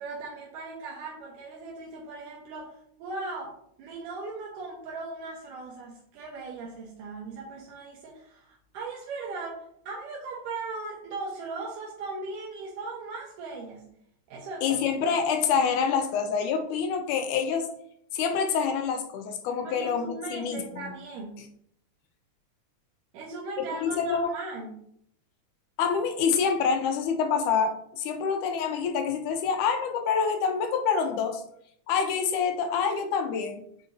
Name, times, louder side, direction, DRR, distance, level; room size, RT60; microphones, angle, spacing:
voice 1, 0.0-3.5 3.8-13.9 14.3-14.8 19.6-21.5 23.1-24.8, right 3 dB, 85° right, -3 dB, 2.6 m, -38 dB
voice 2, 14.6-17.7 18.1-20.9 23.7-24.3 25.8-31.4 31.9-33.6, left 6 dB, 85° left, 5 dB, 2.3 m, -26 dB
8.8 x 4.8 x 2.7 m, 0.70 s
omnidirectional pair, 3.6 m